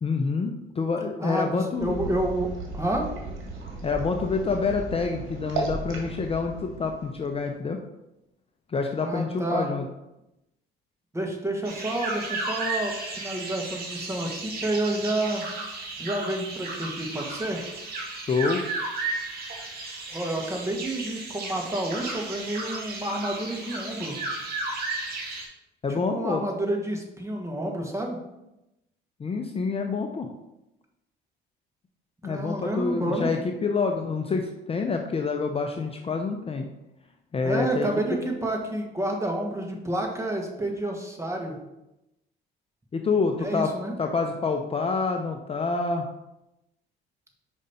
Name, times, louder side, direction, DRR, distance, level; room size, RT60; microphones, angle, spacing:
voice 1, 0.0-2.0 3.8-7.8 8.7-9.8 18.3-18.6 25.8-26.4 29.2-30.3 32.2-36.7 37.3-38.2 42.9-43.7 44.0-46.0, left 4 dB, 30° left, 4 dB, 0.6 m, -27 dB
voice 2, 1.2-3.1 9.0-9.7 11.1-15.4 16.0-17.6 20.1-24.2 26.1-28.2 32.2-33.3 37.4-41.6 43.4-43.9, right 1 dB, 15° right, 1 dB, 1.5 m, -29 dB
sound 1, 1.8-7.6, right 3 dB, 70° right, 1.7 m, -35 dB
sound 2, 11.6-25.4, right 3 dB, 50° right, 2.4 m, -34 dB
5.2 x 5.1 x 4.2 m, 0.92 s
supercardioid pair, 80°, 21 cm